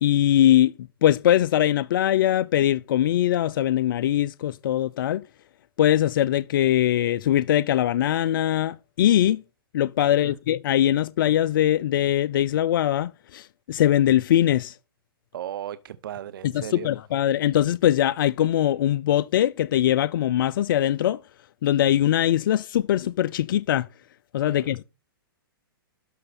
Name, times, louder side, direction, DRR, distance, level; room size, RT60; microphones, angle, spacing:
voice 1, 0.0-5.2 5.8-9.4 9.7-14.8 16.5-21.2 21.6-23.9 24.3-24.8, left 11 dB, 60° left, 0.4 m, -21 dB
voice 2, 15.3-16.9 24.4-24.8, right 11 dB, 65° right, 0.7 m, -36 dB
12.0 x 6.4 x 4.2 m
hypercardioid pair, 120°, 12 cm